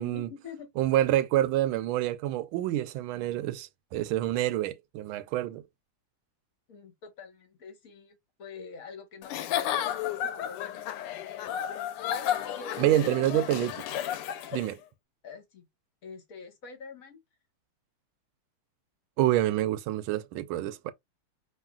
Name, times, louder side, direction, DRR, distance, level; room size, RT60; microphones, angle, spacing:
voice 1, 0.0-0.7 6.7-11.1 12.5-13.6 15.2-15.7 16.0-17.2, left 5 dB, 50° left, 1.2 m, -46 dB
voice 2, 0.8-5.6 12.8-13.7 14.5-14.8 19.2-20.9, right 14 dB, 75° right, 1.3 m, -27 dB
Giggle / Chuckle chortle, 9.2-14.7, left 10 dB, 90° left, 1.6 m, -32 dB
4.8 x 3.2 x 2.3 m
omnidirectional pair, 2.4 m